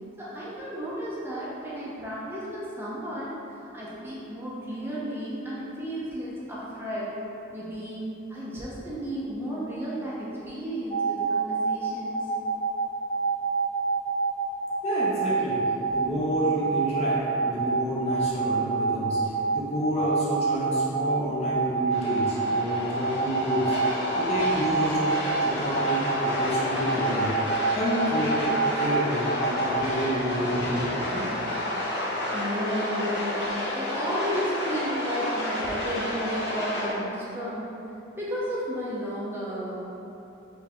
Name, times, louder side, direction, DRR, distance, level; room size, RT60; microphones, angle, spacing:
voice 1, 0.2-3.4 3.7-7.2 7.5-12.3 31.9-37.7 38.2-39.8, equal, 10° right, -8 dB, 0.5 m, -33 dB
sound 1, 10.9-29.8, right 4 dB, 5° left, 1.2 m, -26 dB
voice 2, 14.8-31.3, equal, 35° left, -7 dB, 0.6 m, -29 dB
sound 2, 21.9-36.9, left 1 dB, 65° left, 1.1 m, -30 dB
4.6 x 2.6 x 3.5 m, 3.0 s
head